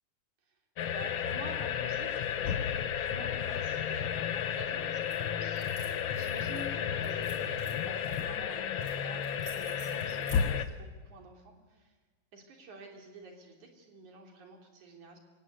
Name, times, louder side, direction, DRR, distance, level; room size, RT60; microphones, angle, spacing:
sound 1, 0.8-10.7, left 8 dB, 70° left, 1.2 m, -32 dB
voice 1, 0.9-11.9 12.3-15.2, right 3 dB, 70° right, 2 dB, 4.6 m, -50 dB
sound 2, 5.0-5.2 5.5-6.7 7.0-8.2 8.8-9.0 9.2-10.4, right 3 dB, 40° right, 5.1 m, -52 dB
27.0 x 16.5 x 9.5 m, 1.3 s
omnidirectional pair, 3.5 m